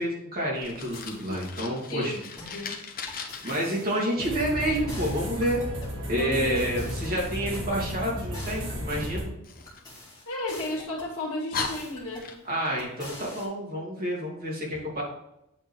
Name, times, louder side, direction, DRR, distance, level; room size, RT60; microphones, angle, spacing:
voice 1, 0.0-2.1 3.4-5.6 6.1-9.3 12.4-15.0, equal, 45° right, -5 dB, 2.8 m, -29 dB
Fire, 0.5-3.5 9.4-10.7 11.1-11.2 11.5-12.7, left 5 dB, 40° left, 0.9 m, -38 dB
sound 1, 0.9-1.5 2.4-2.7 3.1-4.5 4.9-6.0 6.6-7.8 8.3-9.2 9.7-11.1 11.6-12.3 12.8-13.5, left 2 dB, 20° left, 2.2 m, -45 dB
voice 2, 1.9-2.8 3.4-3.5 6.2-6.6 10.3-12.3, left 1 dB, 70° left, -3 dB, 2.0 m, -34 dB
sound 2, 4.2-9.2, equal, 60° right, 1.8 m, -34 dB
8.8 x 3.9 x 4.6 m, 0.84 s
head